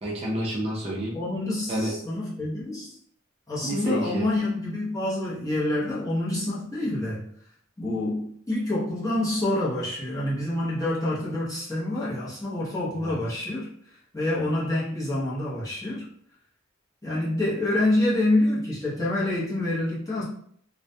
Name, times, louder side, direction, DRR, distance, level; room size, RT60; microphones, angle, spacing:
voice 1, 0.0-1.2 1.7-1.9 3.6-4.3 12.9-13.2, right 1 dB, 30° right, -5 dB, 0.4 m, -29 dB
voice 2, 1.1-3.0 3.5-7.3 7.8-13.7 14.1-16.1 17.0-20.2, left 1 dB, 15° left, -8 dB, 0.7 m, -27 dB
2.3 x 2.1 x 2.6 m, 0.63 s
head